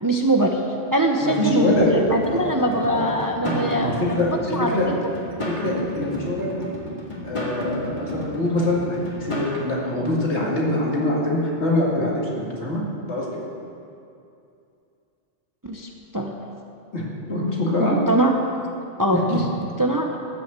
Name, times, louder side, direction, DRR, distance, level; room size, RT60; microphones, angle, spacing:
voice 1, 0.0-4.0 4.5-4.9 15.6-16.3 17.8-18.3 19.0-19.4 19.8-20.2, right 1 dB, 20° right, 2 dB, 0.7 m, -22 dB
voice 2, 1.2-1.9 2.3-3.1 3.4-4.3 4.6-4.9 5.5-6.6 7.2-12.8 13.1-13.5 16.9-18.0 19.1-19.2, left 1 dB, 75° left, -4 dB, 2.5 m, -24 dB
sound 1, 1.8-9.6, equal, 40° left, 2.1 m, -32 dB
13.0 x 6.3 x 8.1 m, 2.6 s
omnidirectional pair, 1.2 m